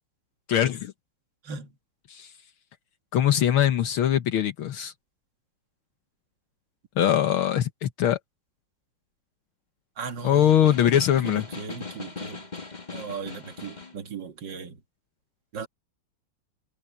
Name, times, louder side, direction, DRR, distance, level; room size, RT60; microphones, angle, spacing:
voice 1, 0.5-0.9 2.1-2.3 3.1-4.9 7.0-8.2 10.2-11.5, left 10 dB, 75° left, 1.9 m, -22 dB
voice 2, 10.0-10.5 11.2-12.4 12.9-14.7 15.5-15.7, right 5 dB, 55° right, 2.4 m, -37 dB
Snare drum, 10.2-14.0, left 4 dB, 20° left, 2.0 m, -40 dB
omnidirectional pair, 2.4 m